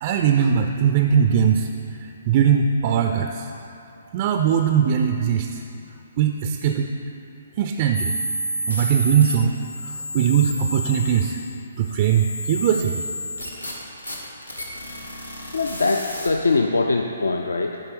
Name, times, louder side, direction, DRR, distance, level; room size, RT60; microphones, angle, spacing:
voice 1, 0.0-1.7 2.0-3.5 4.1-5.6 6.2-6.9 7.6-8.1 8.7-9.6 9.8-11.4 11.8-13.0, right 8 dB, 35° right, 5 dB, 0.3 m, -20 dB
sound 1, 7.9-16.6, equal, 85° left, 1.3 m, -31 dB
voice 2, 15.5-17.8, left 3 dB, 65° left, 3 dB, 0.4 m, -22 dB
11.0 x 4.4 x 5.2 m, 2.8 s
figure-of-eight pair, 130°, 0 cm